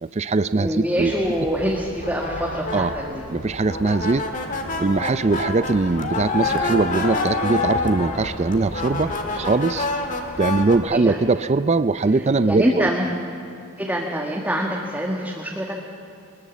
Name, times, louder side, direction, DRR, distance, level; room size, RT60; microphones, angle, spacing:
voice 1, 0.0-1.1 2.7-2.9 3.3-4.3 4.8-9.9 10.4-12.9, right 3 dB, 30° right, 13 dB, 0.4 m, -21 dB
voice 2, 0.5-3.2 10.9-11.2 12.5-13.1 13.8-15.8, equal, 5° right, -2 dB, 1.7 m, -25 dB
sound 1, 1.0-10.8, left 3 dB, 35° left, 1.9 m, -28 dB
23.0 x 20.5 x 7.4 m, 2.8 s
head